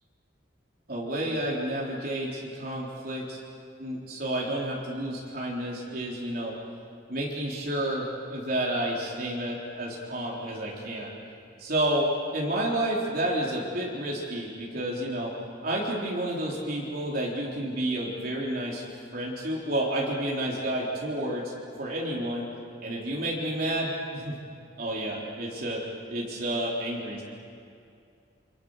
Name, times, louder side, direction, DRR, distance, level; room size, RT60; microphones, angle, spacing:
voice 1, 0.9-3.4 3.8-6.6 7.1-11.1 11.6-15.3 15.6-18.8 19.1-21.5 21.8-22.5 22.8-24.4 24.8-25.8 26.1-27.2, right 1 dB, 50° right, -4 dB, 3.9 m, -30 dB
28.5 x 27.0 x 6.6 m, 2.5 s
head